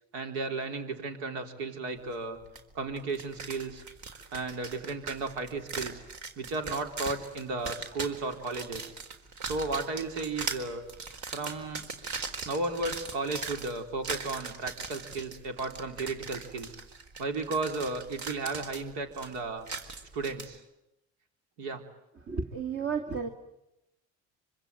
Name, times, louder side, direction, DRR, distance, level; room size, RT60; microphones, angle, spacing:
voice 1, 0.1-2.4 2.7-3.8 4.3-6.0 6.4-8.9 9.4-10.8 11.3-11.8 12.5-16.8 17.2-19.7 20.1-20.6 21.6-21.8, right 3 dB, 75° right, 5 dB, 4.0 m, -34 dB
sound 1, 2.6-2.7 3.0-20.5, right 4 dB, 55° right, 4.2 m, -40 dB
voice 2, 22.3-23.3, right 5 dB, 40° right, 5 dB, 2.4 m, -32 dB
25.5 x 25.0 x 9.2 m, 0.88 s
hypercardioid pair, 70°, 35 cm